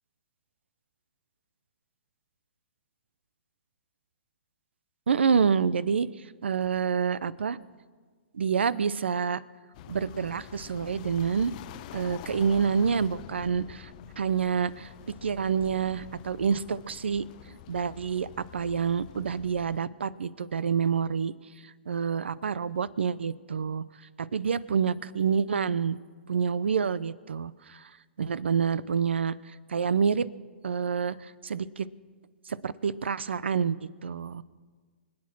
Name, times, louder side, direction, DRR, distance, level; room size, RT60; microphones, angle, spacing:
voice 1, 5.1-6.1 6.4-7.6 8.3-9.4 9.9-11.5 11.9-13.9 14.2-14.9 15.2-17.2 17.7-21.3 21.9-23.8 24.2-26.0 26.3-27.9 28.2-29.3 29.7-30.3 30.6-31.9 32.5-34.4, right 6 dB, 85° right, 19 dB, 0.6 m, -27 dB
sound 1, 9.7-19.8, left 13 dB, 45° left, 0.6 m, -46 dB
25.0 x 8.6 x 6.1 m, 1.5 s
hypercardioid pair, 135°, 6 cm